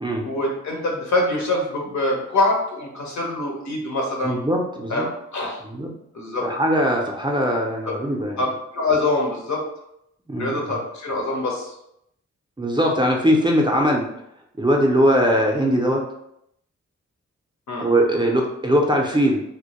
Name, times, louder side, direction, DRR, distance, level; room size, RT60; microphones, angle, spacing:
voice 1, 0.2-4.4 4.9-5.6 6.1-6.5 7.8-7.9 8.4-8.5 8.7-9.6 10.4-11.7 17.7-17.9, left 2 dB, 70° left, 0 dB, 0.7 m, -24 dB
voice 2, 4.2-5.1 5.6-5.9 6.4-8.4 10.3-10.8 12.6-14.1 14.6-16.1 17.8-19.4, equal, 15° right, 0 dB, 0.4 m, -20 dB
2.1 x 2.1 x 2.8 m, 0.77 s
cardioid pair, 60°, 30 cm